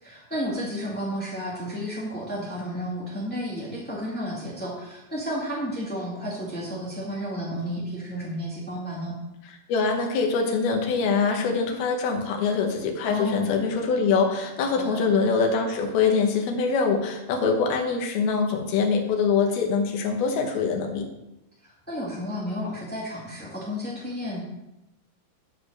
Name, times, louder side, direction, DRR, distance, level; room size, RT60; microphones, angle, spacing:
voice 1, 0.0-9.1 13.0-13.5 14.7-15.0 21.6-24.4, equal, 5° left, -5 dB, 0.8 m, -32 dB
voice 2, 9.7-21.1, left 5 dB, 85° left, 2 dB, 3.1 m, -24 dB
12.5 x 5.1 x 6.6 m, 0.94 s
omnidirectional pair, 4.2 m